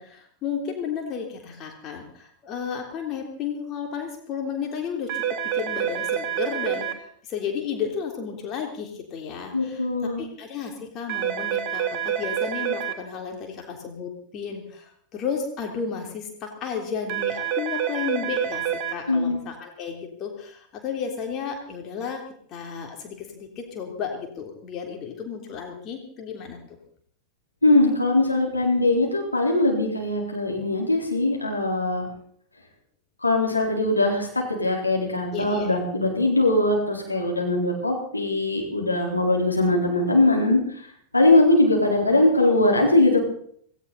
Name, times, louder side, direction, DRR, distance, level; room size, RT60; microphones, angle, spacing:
voice 1, 0.0-9.8 10.2-18.6 18.9-22.2 22.5-26.6 35.3-35.7, left 6 dB, 35° left, 2 dB, 3.3 m, -33 dB
sound 1, 5.1-6.9 11.1-12.9 17.1-18.9, right 9 dB, 40° right, 2.0 m, -27 dB
voice 2, 9.5-10.2 19.1-19.4 27.6-32.1 33.2-40.8 41.1-43.2, left 2 dB, 85° left, -1 dB, 4.2 m, -21 dB
17.5 x 17.5 x 4.1 m, 0.62 s
figure-of-eight pair, 90°, 0 cm